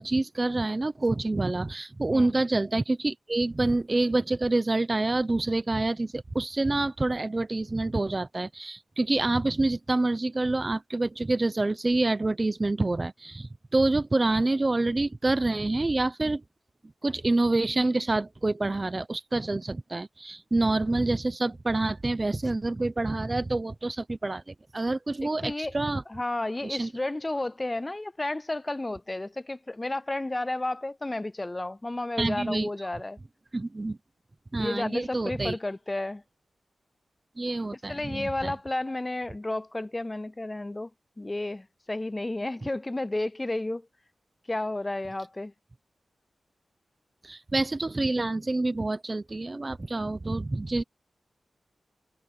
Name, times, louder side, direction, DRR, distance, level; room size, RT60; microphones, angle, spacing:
voice 1, 0.0-16.4 17.0-26.0 26.6-26.9 32.2-32.7 33.5-34.0 34.5-35.6 37.4-38.5 47.2-50.8, right 2 dB, 25° right, 0.8 m, -27 dB
voice 2, 25.2-25.7 26.1-33.2 34.6-36.2 37.7-40.9 41.2-43.9 44.5-45.5, left 2 dB, 20° left, 0.4 m, -32 dB
wide cardioid pair, 135°, 0 cm